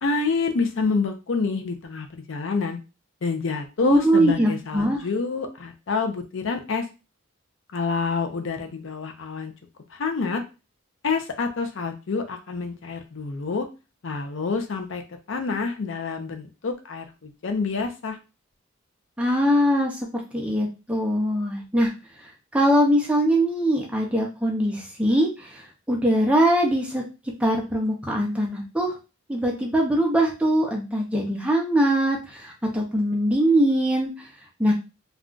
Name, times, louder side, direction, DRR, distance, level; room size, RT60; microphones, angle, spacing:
voice 1, 0.0-2.8 3.2-6.9 7.7-9.5 9.9-10.4 11.0-13.7 14.0-15.0 15.3-18.2, left 4 dB, 65° left, 5 dB, 0.5 m, -27 dB
voice 2, 3.8-5.0 19.2-20.0 20.3-21.9 22.5-27.0 27.4-29.0 29.3-34.1 34.6-34.7, equal, 5° right, 0 dB, 0.5 m, -22 dB
2.4 x 2.3 x 3.7 m, 0.30 s
head